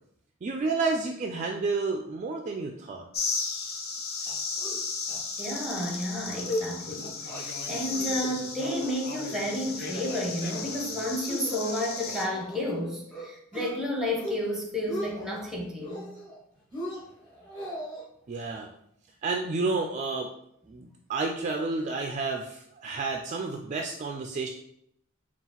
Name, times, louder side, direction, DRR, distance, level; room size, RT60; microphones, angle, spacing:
voice 1, 0.4-3.0 18.3-18.7 19.2-20.3 20.7-24.5, right 3 dB, 35° right, 2 dB, 0.3 m, -30 dB
sound 1, 3.1-12.2, left 4 dB, 50° left, 0.6 m, -35 dB
sound 2, 4.3-4.8 5.1-5.2 5.5-5.8 6.2-6.7 7.0-7.4 7.8-8.3 8.6-9.3 9.7-10.1 10.5-10.8 11.3-12.8 13.1-13.7 14.1-14.5 14.7-15.4 15.8-16.4 16.7-18.0, equal, 25° left, 1.5 m, -37 dB
voice 2, 5.4-16.1, left 1 dB, ahead, -1 dB, 0.8 m, -31 dB
5.5 x 2.4 x 2.9 m, 0.73 s
head